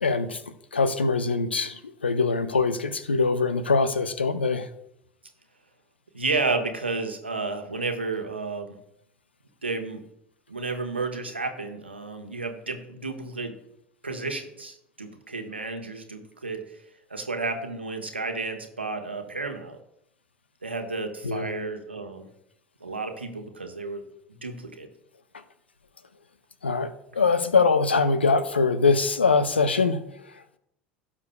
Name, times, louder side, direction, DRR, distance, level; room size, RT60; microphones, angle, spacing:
voice 1, 0.0-4.7 21.2-21.5 26.6-30.6, left 4 dB, 80° left, 12 dB, 0.7 m, -23 dB
voice 2, 6.1-8.8 9.6-10.0 10.5-13.5 14.0-16.7 17.1-19.8 20.6-22.3 22.8-24.0 24.4-24.9, right 3 dB, 85° right, 5 dB, 1.2 m, -31 dB
17.0 x 7.3 x 2.3 m, 0.77 s
figure-of-eight pair, 70°, 6 cm